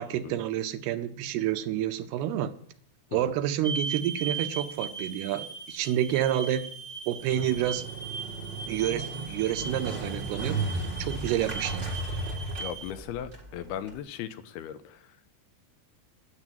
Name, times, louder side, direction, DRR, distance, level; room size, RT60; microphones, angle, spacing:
voice 1, 0.0-2.5 3.1-6.7 7.1-7.8 8.7-10.6 11.0-11.9, right 11 dB, 80° right, 10 dB, 2.7 m, -29 dB
sound 1, 3.6-12.9, right 5 dB, 25° left, 1.2 m, -38 dB
Motorcycle, 7.2-14.0, right 3 dB, 45° right, 0.5 m, -35 dB
voice 2, 12.6-15.4, left 10 dB, 85° left, 11 dB, 2.7 m, -38 dB
9.9 x 8.3 x 9.1 m, 0.64 s
omnidirectional pair, 4.6 m